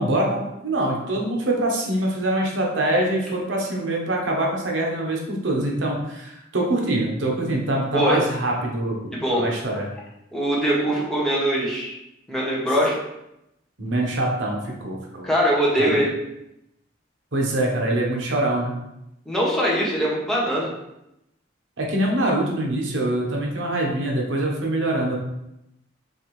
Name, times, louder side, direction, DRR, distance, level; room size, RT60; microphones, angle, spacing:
voice 1, 0.0-9.9 13.8-15.3 15.8-16.0 17.3-18.8 21.8-25.2, right 1 dB, 75° right, -1 dB, 0.9 m, -24 dB
voice 2, 9.1-9.4 10.3-11.9 12.3-12.9 15.2-16.1 19.3-20.7, equal, 5° left, -6 dB, 0.9 m, -22 dB
4.5 x 3.3 x 3.1 m, 0.86 s
head